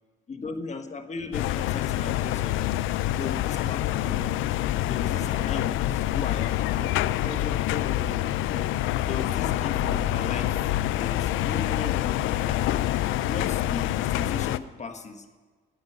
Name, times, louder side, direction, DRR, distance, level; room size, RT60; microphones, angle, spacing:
voice 1, 0.3-2.7 3.2-4.3 4.8-6.9 7.2-8.7 9.0-12.8 13.3-15.3, left 4 dB, 35° left, 7 dB, 1.4 m, -37 dB
sound 1, 1.3-14.6, left 14 dB, 90° left, 0.4 m, -26 dB
11.5 x 8.8 x 9.4 m, 1.4 s
cardioid pair, 90°, 20 cm